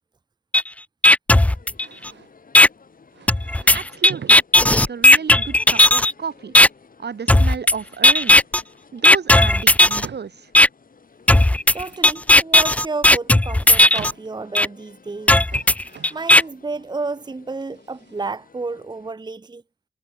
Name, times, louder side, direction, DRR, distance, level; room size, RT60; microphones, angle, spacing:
sound 1, 0.5-0.6 1.0-2.1 2.5-2.7 3.3-6.1 6.5-6.7 7.3-7.7 8.0-8.6 9.0-10.1 10.5-10.7 11.3-14.1 14.5-14.7 15.3-16.4, left 1 dB, 10° left, 0.3 m, -13 dB
sound 2, 1.3-19.1, left 5 dB, 55° left, 3.3 m, -52 dB
sound 3, 1.8-2.3 3.1-4.4 5.5-6.8 8.2-8.6 9.0-9.1 10.0-10.4 11.4-12.3 13.3-14.4 15.3-16.5 17.5-18.3, right 7 dB, 90° right, 1.3 m, -42 dB
voice 1, 3.7-6.5 7.0-8.4 8.9-10.5, right 6 dB, 70° right, 2.2 m, -32 dB
voice 2, 11.7-15.4 16.1-19.6, right 3 dB, 25° right, 0.7 m, -31 dB
wide cardioid pair, 100°, 18 cm